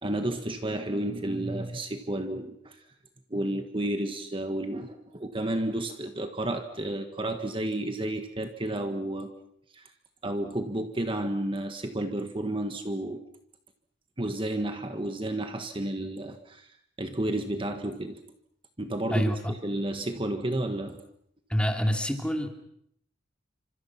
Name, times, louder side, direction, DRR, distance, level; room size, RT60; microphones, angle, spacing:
voice 1, 0.0-2.8 3.3-9.3 9.7-9.8 10.2-13.2 14.2-16.7 17.0-18.2 18.8-21.0, right 1 dB, 30° right, 6 dB, 1.6 m, -31 dB
voice 2, 19.1-19.5 21.5-22.5, equal, 5° left, 4 dB, 2.8 m, -27 dB
29.0 x 26.0 x 5.9 m, 0.71 s
head